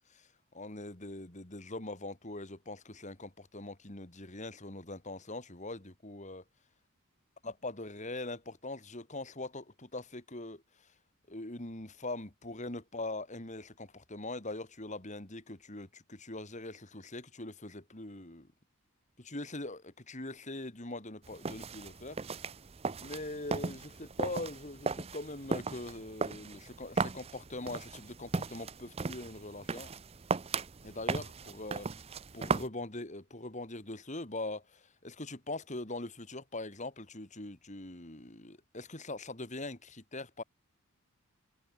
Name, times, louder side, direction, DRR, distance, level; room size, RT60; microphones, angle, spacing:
voice 1, 0.5-6.4 7.6-10.6 11.3-18.5 19.2-22.2 23.0-29.9 30.8-31.9 32.3-40.4, left 2 dB, 35° left, 2.7 m, -42 dB
sound 1, 21.2-32.7, right 4 dB, 25° right, 0.6 m, -37 dB
head